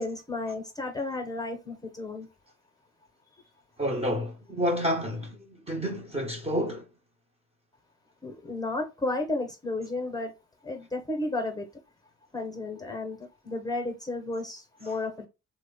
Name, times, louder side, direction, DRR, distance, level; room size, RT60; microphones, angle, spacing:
voice 1, 0.0-2.3 8.2-10.3 10.6-11.7 12.3-13.2 13.4-15.3, left 2 dB, 10° left, 0.9 m, -32 dB
voice 2, 3.8-6.9, equal, 20° right, 0.9 m, -29 dB
3.1 x 2.2 x 3.8 m
cardioid pair, 90°, 30 cm